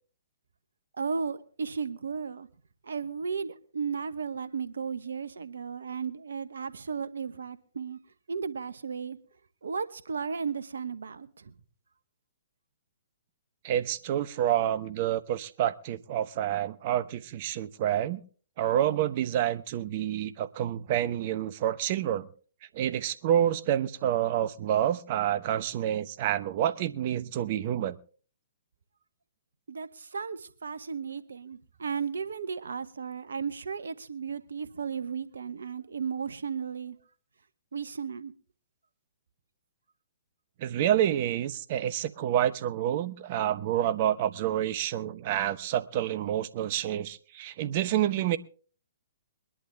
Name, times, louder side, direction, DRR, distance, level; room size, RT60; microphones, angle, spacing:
voice 1, 1.0-2.5 2.8-8.0 8.3-9.2 9.6-11.5 29.7-37.0 37.7-38.3, right 6 dB, 75° right, 1.1 m, -35 dB
voice 2, 13.6-18.2 18.6-22.3 22.7-28.0 40.6-48.4, right 11 dB, 45° right, 0.8 m, -28 dB
22.0 x 11.0 x 3.4 m
figure-of-eight pair, 125°, 0 cm